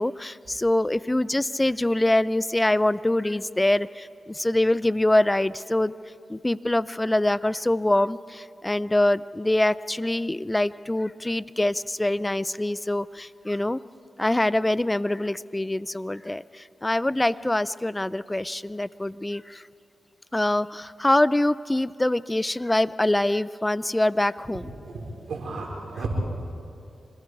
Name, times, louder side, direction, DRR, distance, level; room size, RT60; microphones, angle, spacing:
voice 1, 0.0-5.9 6.3-13.8 14.2-19.6 20.3-24.7, left 1 dB, 20° left, 18 dB, 0.5 m, -24 dB
voice 2, 24.5-26.1, right 3 dB, 80° right, -1 dB, 4.1 m, -35 dB
26.0 x 21.0 x 4.8 m, 2.5 s
cardioid pair, 45°, 0 cm